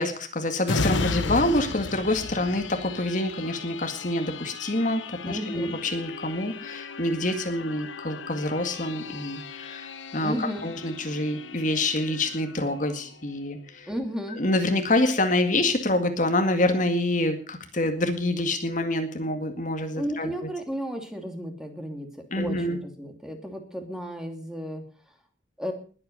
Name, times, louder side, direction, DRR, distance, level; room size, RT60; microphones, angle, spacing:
voice 1, 0.0-9.9 10.1-13.9 14.4-20.3 22.3-22.8, left 1 dB, 45° left, 6 dB, 2.1 m, -26 dB
sound 1, 0.6-14.0 14.4-14.6, left 3 dB, 90° left, 1.1 m, -35 dB
voice 2, 5.2-5.8 10.2-10.7 13.9-14.4 20.0-22.1 22.3-24.8 25.6-25.7, equal, 5° right, 4 dB, 2.7 m, -33 dB
21.0 x 8.6 x 6.7 m, 0.42 s
head